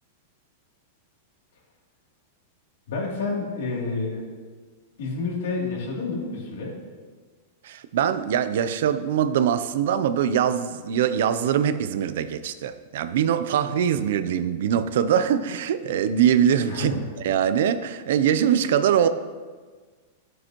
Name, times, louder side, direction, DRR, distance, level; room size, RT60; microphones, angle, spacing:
voice 1, 2.9-4.3 5.0-6.8 16.7-17.1, left 3 dB, 75° left, -3 dB, 2.9 m, -29 dB
voice 2, 7.6-16.9 17.2-19.1, right 9 dB, 65° right, 11 dB, 0.6 m, -22 dB
13.0 x 7.9 x 3.0 m, 1.4 s
supercardioid pair, 160°, 0 cm